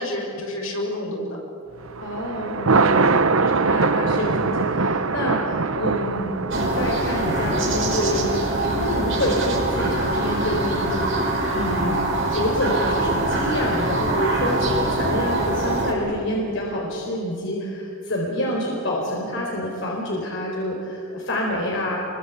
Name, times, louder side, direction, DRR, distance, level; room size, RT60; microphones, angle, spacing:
voice 1, 0.0-1.4 2.5-3.0 8.8-9.1, left 1 dB, 85° left, 0 dB, 6.8 m, -29 dB
Thunder, 1.8-13.1, right 4 dB, 90° right, 1.0 m, -25 dB
voice 2, 2.0-2.6 3.4-12.0 12.3-22.0, equal, 60° left, -2 dB, 4.2 m, -27 dB
sound 1, 6.5-15.9, right 2 dB, 65° right, 5.9 m, -24 dB
27.0 x 23.5 x 8.4 m, 2.5 s
head